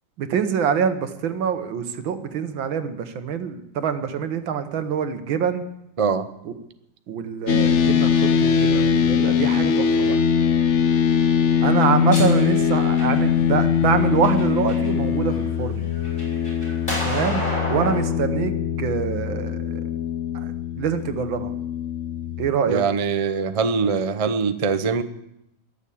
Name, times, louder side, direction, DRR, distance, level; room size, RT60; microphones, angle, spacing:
voice 1, 0.2-5.7 6.5-6.6 7.1-10.2 11.6-15.9 17.0-19.8 20.3-21.5 22.4-22.8, right 7 dB, 85° right, 9 dB, 2.0 m, -25 dB
sound 1, 7.5-22.5, left 7 dB, 50° left, 0.9 m, -21 dB
sound 2, 11.7-13.4 14.0-14.9 15.3-18.0, equal, 25° left, 7.6 m, -30 dB
voice 2, 22.7-25.0, right 5 dB, 55° right, 10 dB, 0.3 m, -22 dB
21.5 x 7.2 x 8.5 m, 0.84 s
omnidirectional pair, 2.1 m